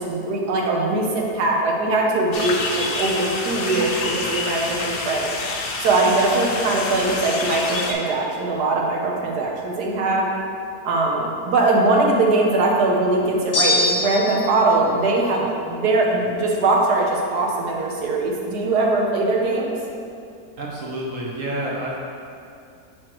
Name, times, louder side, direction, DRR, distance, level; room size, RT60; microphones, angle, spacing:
voice 1, 0.0-5.3 5.8-10.3 10.8-19.7, right 2 dB, 80° right, -1 dB, 1.4 m, -21 dB
sound 1, 2.3-7.9, left 3 dB, 65° left, 0.6 m, -27 dB
sound 2, 13.5-14.5, left 2 dB, 90° left, 1.7 m, -21 dB
voice 2, 20.6-22.0, right 1 dB, 60° right, -3 dB, 1.1 m, -28 dB
6.3 x 6.2 x 3.0 m, 2.5 s
omnidirectional pair, 1.7 m